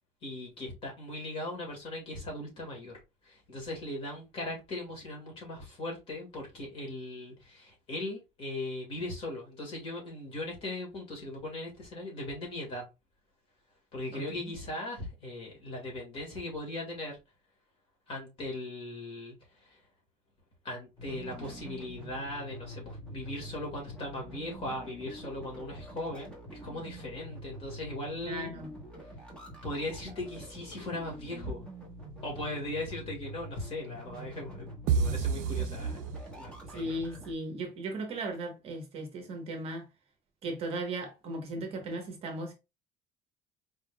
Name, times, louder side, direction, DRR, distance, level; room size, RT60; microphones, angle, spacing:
voice 1, 0.2-12.8 13.9-17.2 18.1-19.8 20.6-28.5 29.6-31.7 32.2-36.0 36.4-37.0, left 1 dB, 35° left, 1.8 m, -39 dB
voice 2, 14.1-14.4 28.3-28.7 36.7-39.9 40.4-42.5, right 2 dB, 40° right, 1.0 m, -37 dB
sound 1, 21.0-37.3, equal, 5° left, 1.0 m, -46 dB
sound 2, 34.9-36.7, right 6 dB, 55° right, 0.4 m, -29 dB
4.3 x 3.6 x 2.2 m
cardioid pair, 175°, 16 cm